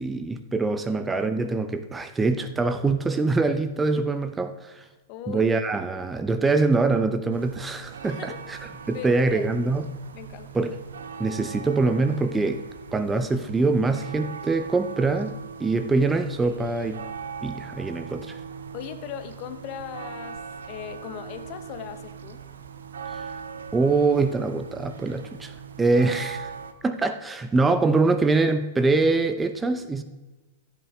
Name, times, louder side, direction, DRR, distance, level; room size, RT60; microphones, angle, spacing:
voice 1, 0.0-4.8 5.3-9.9 10.5-10.8 11.2-12.6 12.9-17.0 17.4-18.4 23.7-25.5 25.8-26.5 26.8-30.0, right 3 dB, 10° right, 9 dB, 0.6 m, -24 dB
voice 2, 5.1-5.5 8.1-8.4 8.8-9.5 10.1-10.5 18.7-22.4, left 10 dB, 40° left, 10 dB, 1.0 m, -39 dB
sound 1, 7.3-26.7, right 6 dB, 70° right, 0.9 m, -40 dB
15.0 x 8.3 x 3.4 m, 1.2 s
figure-of-eight pair, 100°, 0 cm